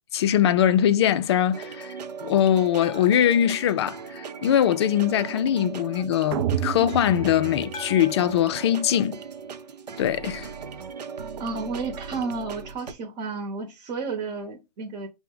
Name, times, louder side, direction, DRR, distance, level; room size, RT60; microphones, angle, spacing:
voice 1, 0.1-1.9 2.2-9.2 10.0-10.5, left 10 dB, 40° left, 0.4 m, -22 dB
sound 1, 1.5-12.9, right 6 dB, 75° right, 0.7 m, -38 dB
sound 2, 2.8-5.0 7.7-10.1, left 3 dB, 20° left, 0.7 m, -45 dB
sound 3, 6.3-8.4, right 9 dB, 40° right, 0.5 m, -30 dB
voice 2, 11.4-15.1, right 4 dB, 25° right, 0.9 m, -32 dB
5.6 x 2.1 x 3.7 m
hypercardioid pair, 135°, 21 cm